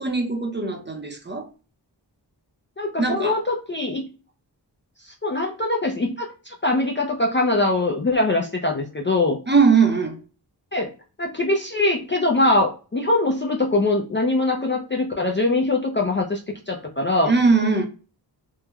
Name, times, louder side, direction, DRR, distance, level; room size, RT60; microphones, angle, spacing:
voice 1, 0.0-1.5 3.0-3.4 9.5-10.2 17.3-17.8, right 4 dB, 25° right, 0.6 m, -20 dB
voice 2, 2.8-4.1 5.1-9.4 10.7-10.9 11.2-17.3, left 2 dB, 30° left, 0.4 m, -22 dB
3.1 x 2.1 x 2.3 m
wide cardioid pair, 50°, 44 cm